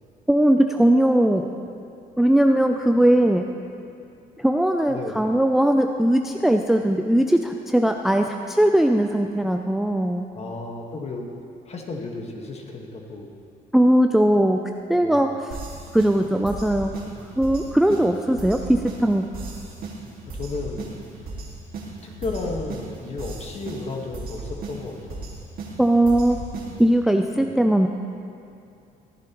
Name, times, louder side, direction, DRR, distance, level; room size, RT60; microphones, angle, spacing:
voice 1, 0.3-1.5 2.2-3.4 4.4-10.3 13.7-14.6 14.9-15.3 15.9-16.9 17.4-19.3 25.8-26.4 26.8-27.9, right 1 dB, ahead, 4 dB, 0.4 m, -19 dB
voice 2, 4.9-5.3 10.3-11.3 11.7-13.4 15.0-15.2 20.3-20.9 22.0-25.3 27.4-27.5, left 3 dB, 40° left, 1 dB, 1.5 m, -33 dB
sound 1, 15.5-27.0, right 3 dB, 60° right, 2.0 m, -36 dB
14.0 x 10.5 x 3.0 m, 2.6 s
cardioid pair, 110°, 17 cm